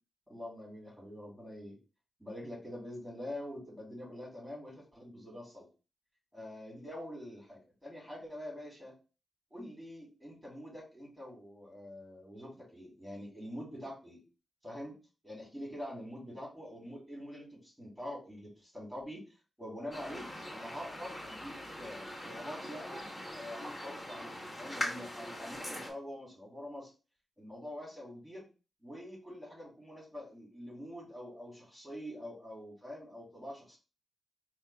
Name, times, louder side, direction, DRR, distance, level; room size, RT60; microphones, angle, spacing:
voice 1, 0.3-1.8 2.2-5.6 6.3-9.0 9.5-14.2 14.6-14.9 15.2-19.2 19.6-23.0 23.3-24.3 24.6-26.9 27.4-28.5 28.8-33.8, left 1 dB, 5° right, -3 dB, 2.7 m, -45 dB
sound 1, 19.9-25.9, left 1 dB, 25° left, 2.7 m, -42 dB
4.3 x 2.4 x 4.7 m, 0.32 s
wide cardioid pair, 100°, 0 cm